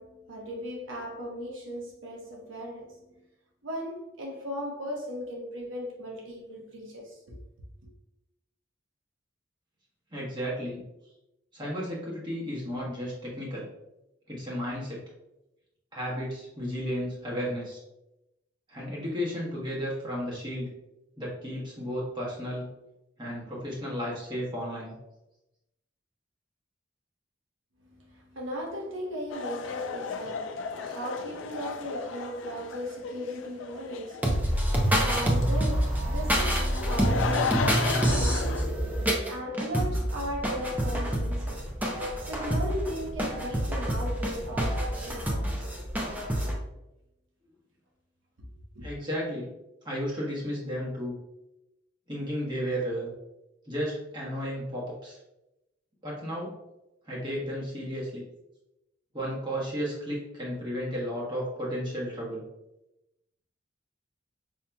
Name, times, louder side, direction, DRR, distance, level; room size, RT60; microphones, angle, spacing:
voice 1, 0.0-3.2 3.6-7.4 27.8-38.9 39.2-41.6 42.2-45.7 48.7-48.8, equal, 85° right, 0.9 m, -37 dB
voice 2, 10.1-10.8 11.5-13.7 14.3-15.0 15.9-17.8 18.7-20.7 21.2-22.7 23.2-24.9 48.8-49.5 49.8-51.2 52.1-53.1 53.7-55.2 56.0-56.5 57.0-58.2 59.1-62.4, equal, 25° right, 1.2 m, -33 dB
sound 1, 29.3-38.6, left 5 dB, 80° left, 0.4 m, -35 dB
sound 2, 34.2-46.5, equal, 10° right, 0.6 m, -27 dB
5.4 x 2.8 x 2.3 m
head